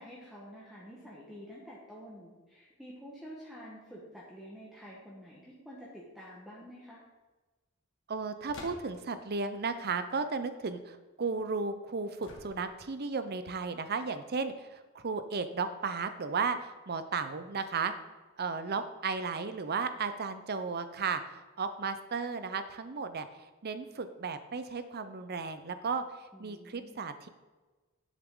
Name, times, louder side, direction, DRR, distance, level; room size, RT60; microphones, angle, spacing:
voice 1, 0.0-7.0 26.3-27.1, equal, ahead, -6 dB, 1.3 m, -49 dB
voice 2, 8.1-17.9 18.4-23.3 23.6-27.3, right 4 dB, 45° right, 10 dB, 0.7 m, -34 dB
sound 1, 8.5-9.2 12.2-12.9, left 2 dB, 60° left, 1.7 m, -48 dB
10.0 x 7.4 x 3.8 m, 1.2 s
head